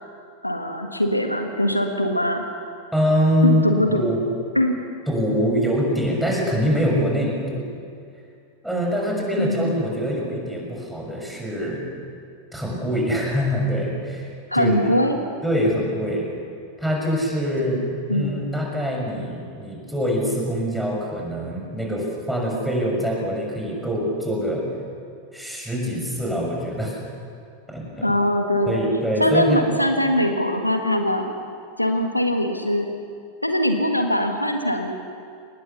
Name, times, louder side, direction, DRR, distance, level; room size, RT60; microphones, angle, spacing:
voice 1, 0.4-2.5 3.4-4.1 4.5-4.8 9.4-9.7 14.5-15.2 18.1-18.4 28.0-28.8 29.2-31.3 31.8-32.9 33.4-35.0, left 1 dB, 85° left, 5 dB, 1.6 m, -22 dB
voice 2, 2.9-3.6 3.9-4.2 5.1-7.6 8.6-11.8 12.5-14.3 14.5-14.8 15.4-16.3 16.8-24.6 25.3-27.0 27.7-28.1 28.7-29.7, equal, ahead, -2 dB, 6.1 m, -24 dB
25.0 x 19.5 x 7.1 m, 2.4 s
figure-of-eight pair, 90°, 0 cm